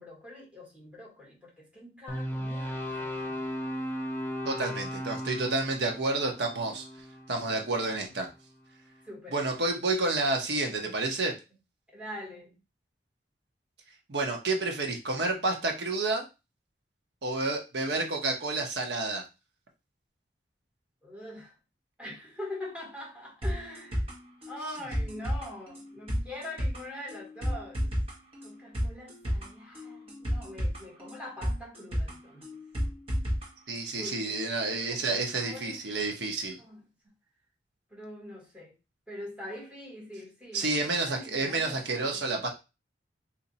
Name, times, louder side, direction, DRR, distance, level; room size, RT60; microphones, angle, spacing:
voice 1, 0.0-3.4 9.0-9.4 11.9-12.6 21.0-21.5 22.0-24.0 24.5-27.9 28.4-32.5 33.9-34.4 34.7-35.8 36.6-36.9 37.9-38.7 39.1-42.2, left 1 dB, 5° right, 1.4 m, -43 dB
sound 1, 2.1-8.3, equal, 15° left, 0.5 m, -36 dB
voice 2, 4.4-6.8 7.3-8.3 9.3-11.3 14.1-16.2 17.2-19.2 33.7-36.6 40.5-42.5, right 3 dB, 75° right, 1.0 m, -30 dB
sound 2, 23.4-33.5 33.8-33.9, equal, 30° right, 1.1 m, -32 dB
2.8 x 2.7 x 4.0 m
head